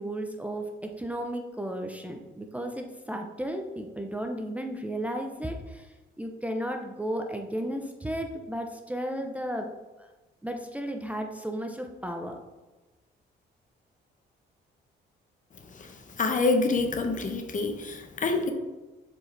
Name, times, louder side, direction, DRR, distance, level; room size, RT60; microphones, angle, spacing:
voice 1, 0.0-9.7 10.4-12.4, right 1 dB, 5° right, 3 dB, 0.6 m, -34 dB
voice 2, 15.7-18.5, left 3 dB, 40° left, 5 dB, 0.9 m, -27 dB
7.1 x 4.7 x 3.3 m, 1.1 s
cardioid pair, 90°, 20 cm